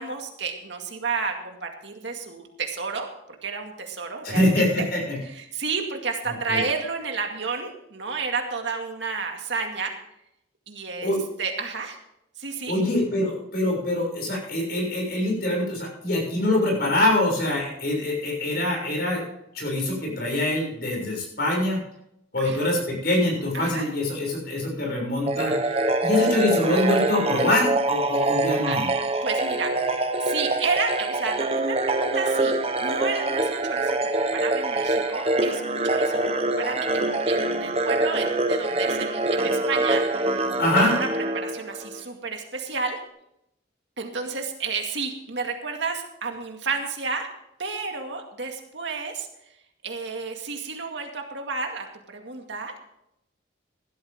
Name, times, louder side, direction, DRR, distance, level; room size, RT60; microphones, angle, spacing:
voice 1, 0.0-3.1 3.4-4.9 5.2-9.9 10.7-11.1 11.4-12.0 12.4-12.7 22.4-22.6 23.5-23.9 28.7-28.8 29.2-34.0 34.3-40.5 40.8-41.1 41.3-43.0 44.0-47.3 47.6-49.3 49.8-52.7, right 4 dB, 65° right, 3 dB, 2.2 m, -31 dB
voice 2, 4.2-5.2 6.5-6.6 11.0-11.2 12.7-19.2 19.5-21.8 22.3-28.9 40.6-40.9, left 1 dB, 50° left, -1 dB, 6.8 m, -24 dB
sound 1, 25.3-42.0, right 2 dB, 30° right, 1.0 m, -25 dB
16.0 x 12.5 x 3.7 m, 0.79 s
head